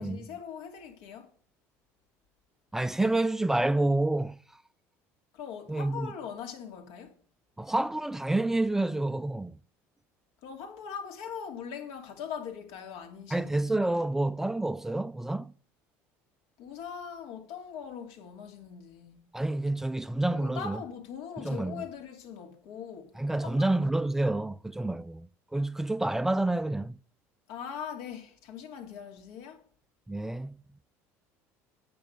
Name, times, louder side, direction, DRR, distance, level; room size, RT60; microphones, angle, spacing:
voice 1, 0.0-1.3 5.3-7.2 10.4-13.8 16.6-19.3 20.3-23.2 23.4-23.7 27.5-29.6, left 7 dB, 80° left, 2.7 m, -41 dB
voice 2, 2.7-4.4 5.7-6.1 7.6-9.5 13.3-15.5 19.3-20.8 21.4-21.8 23.2-25.3 25.5-26.9 30.1-30.6, right 2 dB, 5° right, 0.3 m, -28 dB
8.8 x 8.8 x 5.1 m
cardioid pair, 130°, 6 cm